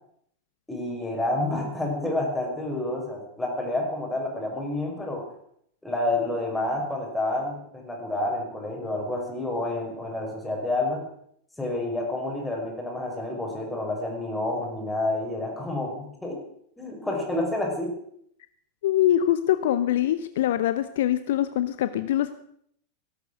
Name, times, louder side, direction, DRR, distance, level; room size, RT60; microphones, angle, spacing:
voice 1, 0.7-5.3 5.8-11.0 11.6-16.4 16.8-17.9, left 2 dB, 5° left, 0 dB, 5.8 m, -29 dB
voice 2, 18.8-22.3, left 12 dB, 55° left, 12 dB, 0.8 m, -23 dB
18.0 x 12.0 x 6.5 m, 0.69 s
figure-of-eight pair, 90°, 0 cm